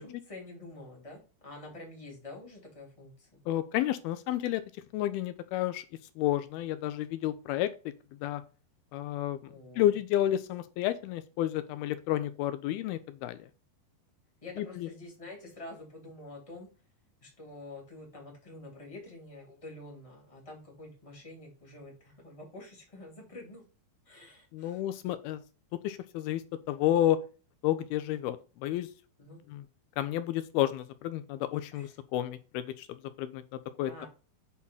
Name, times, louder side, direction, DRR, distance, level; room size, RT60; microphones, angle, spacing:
voice 1, 0.0-3.4 9.5-9.9 14.4-16.7 17.2-23.7 24.0-24.8 29.2-29.4 31.7-31.9 33.9-34.1, left 2 dB, 10° left, 0 dB, 2.2 m, -47 dB
voice 2, 3.5-4.6 4.9-5.9 6.2-7.7 8.2-8.4 8.9-9.4 9.8-13.5 14.6-14.9 24.5-25.4 25.8-27.2 27.6-28.9 29.5-29.6 30.0-32.9 33.2-34.1, left 13 dB, 80° left, 12 dB, 2.4 m, -31 dB
8.7 x 4.2 x 5.5 m, 0.34 s
omnidirectional pair, 4.6 m